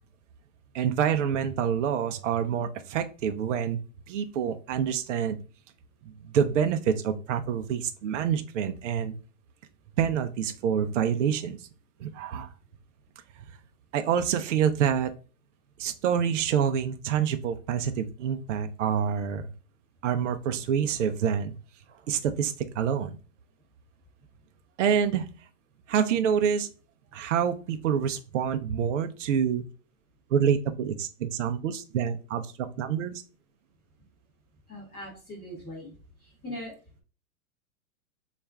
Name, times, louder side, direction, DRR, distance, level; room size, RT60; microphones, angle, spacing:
voice 1, 0.7-3.8 4.1-5.4 6.2-9.2 10.0-11.6 12.0-12.5 13.9-15.1 15.8-19.5 20.0-21.5 22.1-23.2 24.8-25.3 25.9-26.7 27.1-29.6 30.3-33.2, right 8 dB, 60° right, 8 dB, 0.5 m, -27 dB
voice 2, 34.7-35.9 36.4-36.7, left 1 dB, 10° left, -5 dB, 0.6 m, -40 dB
4.2 x 2.4 x 3.4 m, 0.36 s
hypercardioid pair, 175°, 43 cm